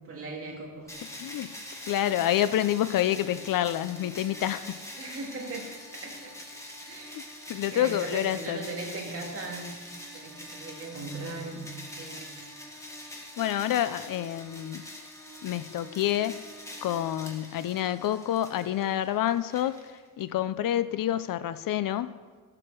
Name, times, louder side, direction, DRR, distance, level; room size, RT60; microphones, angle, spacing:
voice 1, 0.1-0.9 5.0-5.7 5.9-6.4 6.9-7.3 7.7-9.7 10.1-11.7 12.0-12.3, right 2 dB, 40° right, -1 dB, 2.4 m, -38 dB
sound 1, 0.9-20.2, left 1 dB, 10° left, 1.4 m, -44 dB
voice 2, 1.2-1.5 1.9-4.8 7.1-7.2 7.5-8.6 13.4-14.8 15.4-16.4 16.8-19.8 20.2-22.1, left 12 dB, 75° left, 14 dB, 0.6 m, -28 dB
13.5 x 7.7 x 6.2 m, 1.5 s
wide cardioid pair, 180°, 34 cm